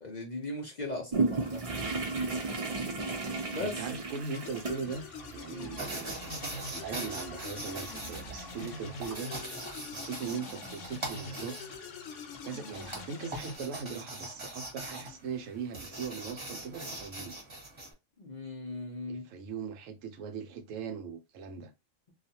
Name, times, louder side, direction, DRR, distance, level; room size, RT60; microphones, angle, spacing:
voice 1, 0.0-1.6 3.5-3.8 5.5-5.7 18.2-19.2, left 2 dB, 50° left, 0.6 m, -38 dB
sound 1, 1.1-9.1, right 3 dB, 45° right, 0.5 m, -36 dB
voice 2, 3.6-6.4 6.7-9.3 9.9-11.6 12.4-17.4 19.1-21.7, right 6 dB, 85° right, 1.0 m, -40 dB
sound 2, 4.3-13.6, left 4 dB, 75° left, 0.9 m, -44 dB
sound 3, 5.8-17.9, right 2 dB, 25° right, 0.8 m, -42 dB
2.4 x 2.3 x 2.7 m
omnidirectional pair, 1.3 m